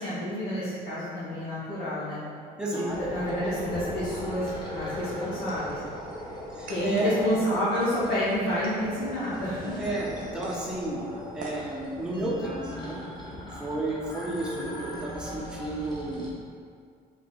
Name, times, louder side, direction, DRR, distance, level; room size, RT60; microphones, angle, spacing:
voice 1, 0.0-2.2 2.7-5.8 6.7-9.8, equal, 75° left, -11 dB, 1.2 m, -29 dB
voice 2, 2.6-3.0 6.5-7.1 9.8-11.0 11.3-13.0 13.6-16.3, right 1 dB, 5° right, -5 dB, 0.8 m, -32 dB
sound 1, 2.9-16.3, equal, 25° left, 0.9 m, -39 dB
sound 2, 6.0-12.4, right 2 dB, 50° right, 0.8 m, -47 dB
3.7 x 2.5 x 4.5 m, 2.2 s
cardioid pair, 110°, 17 cm